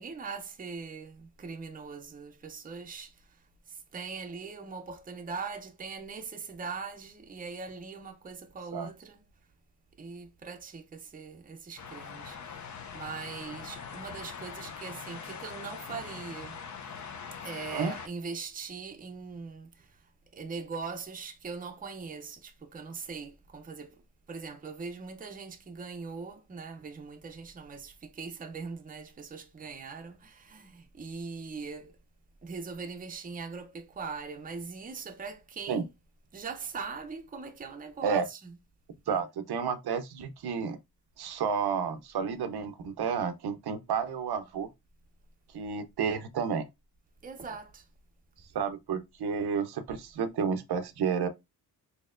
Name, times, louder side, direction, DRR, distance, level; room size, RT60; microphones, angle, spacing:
voice 1, 0.0-3.1 3.9-9.2 10.0-16.6 17.4-19.7 20.3-23.9 24.3-31.9 32.4-35.9 36.3-38.6 39.1-39.2 47.2-47.8, right 5 dB, 20° right, 0.5 m, -41 dB
sound 1, 11.8-18.1, left 6 dB, 50° left, 0.5 m, -42 dB
voice 2, 39.1-40.8 41.2-44.7 45.5-46.7 48.5-51.3, right 6 dB, 75° right, 0.6 m, -31 dB
4.2 x 2.8 x 2.4 m
wide cardioid pair, 120°, 39 cm